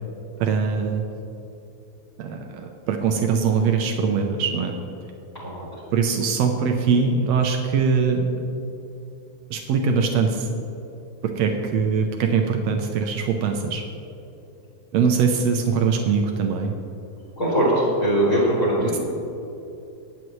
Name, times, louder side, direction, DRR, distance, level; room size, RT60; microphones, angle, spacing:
voice 1, 0.4-1.0 2.2-4.7 5.9-8.4 9.5-10.5 11.2-13.8 14.9-16.7 18.8-19.0, right 5 dB, 90° right, 3 dB, 1.4 m, -22 dB
voice 2, 17.4-19.0, right 1 dB, 25° left, -7 dB, 3.7 m, -21 dB
23.5 x 9.2 x 3.2 m, 2.8 s
omnidirectional pair, 4.1 m